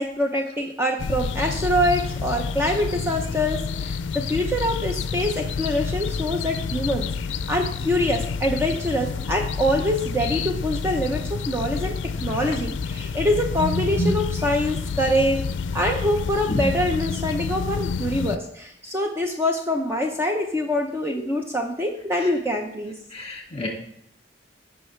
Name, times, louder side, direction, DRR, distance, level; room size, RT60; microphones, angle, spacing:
voice 1, 0.0-4.0 4.3-7.1 7.5-15.4 15.7-22.9, equal, 15° right, 2 dB, 0.7 m, -25 dB
sound 1, 1.0-18.4, left 5 dB, 75° left, 0.4 m, -29 dB
voice 2, 13.8-14.1 16.5-16.7 21.1-21.2 22.1-22.3 23.1-23.7, equal, 35° left, 0 dB, 2.1 m, -29 dB
15.0 x 5.6 x 3.2 m, 0.72 s
head